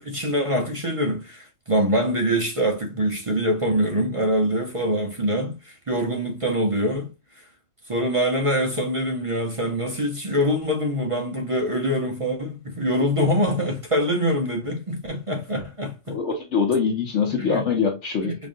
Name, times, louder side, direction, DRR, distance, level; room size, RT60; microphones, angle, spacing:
voice 1, 0.0-7.1 7.4-7.5 7.9-16.2 17.3-17.6 18.2-18.3, equal, 40° right, 0.5 m, -24 dB
voice 2, 16.1-18.4, left 5 dB, 65° left, 1.0 m, -23 dB
5.1 x 2.5 x 2.5 m
omnidirectional pair, 1.4 m